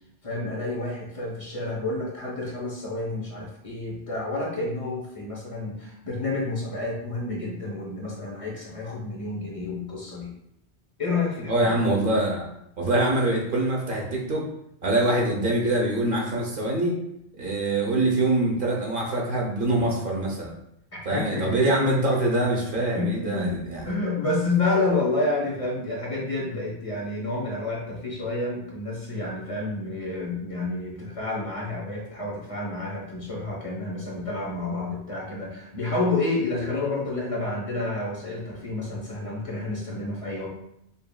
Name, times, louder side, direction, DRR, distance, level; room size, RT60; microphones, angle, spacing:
voice 1, 0.2-10.3 11.0-11.8 21.1-22.0 22.9-23.6 23.8-40.5, left 2 dB, 30° left, -4 dB, 1.1 m, -29 dB
voice 2, 11.5-12.5 12.8-14.5 14.8-17.0 17.4-20.5 21.0-23.9, right 2 dB, 55° right, -2 dB, 1.0 m, -24 dB
5.5 x 2.7 x 2.3 m, 0.77 s
omnidirectional pair, 1.1 m